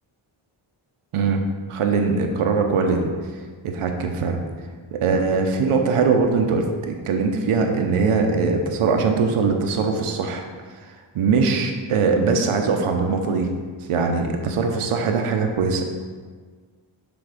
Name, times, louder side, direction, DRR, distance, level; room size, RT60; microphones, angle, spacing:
voice 1, 1.1-3.1 3.6-4.4 4.9-10.4 10.9-13.5 13.9-15.8, right 4 dB, 85° right, 4 dB, 0.8 m, -21 dB
7.1 x 3.5 x 4.9 m, 1.5 s
cardioid pair, 75°, 50 cm